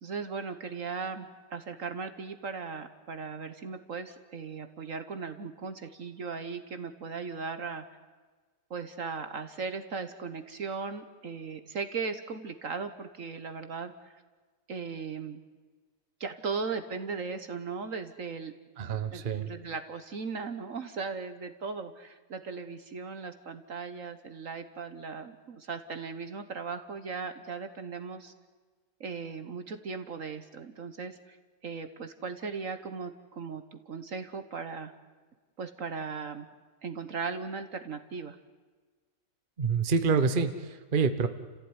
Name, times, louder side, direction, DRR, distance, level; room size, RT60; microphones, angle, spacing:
voice 1, 0.0-7.8 8.7-14.2 14.7-15.4 16.2-18.5 19.1-28.3 29.0-31.4 31.6-34.9 35.6-36.5 36.8-38.4, right 5 dB, 50° right, 9 dB, 1.4 m, -37 dB
voice 2, 18.8-19.5 39.6-41.3, right 5 dB, 35° right, 10 dB, 1.2 m, -27 dB
29.5 x 15.5 x 9.7 m, 1.4 s
omnidirectional pair, 1.8 m